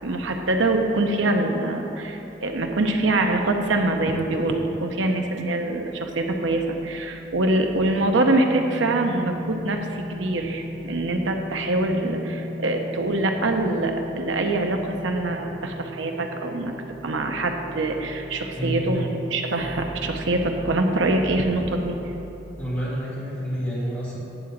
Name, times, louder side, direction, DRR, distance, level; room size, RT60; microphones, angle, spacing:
voice 1, 0.0-16.7 17.0-22.0, right 2 dB, 75° right, 3 dB, 0.7 m, -24 dB
sound 1, 7.9-21.9, left 1 dB, 60° right, 1.8 m, -38 dB
voice 2, 18.5-19.0 22.6-24.2, equal, 10° left, -7 dB, 1.7 m, -28 dB
9.4 x 3.8 x 7.1 m, 2.9 s
head